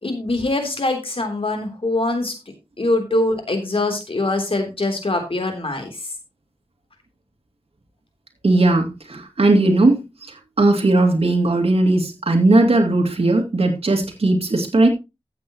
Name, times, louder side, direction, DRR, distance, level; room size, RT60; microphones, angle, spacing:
voice 1, 0.0-2.3 2.8-5.9, left 2 dB, 65° left, 4 dB, 3.3 m, -23 dB
voice 2, 8.4-14.9, right 2 dB, 85° right, 2 dB, 2.3 m, -18 dB
14.0 x 7.8 x 3.0 m, 0.25 s
wide cardioid pair, 50°, 10 cm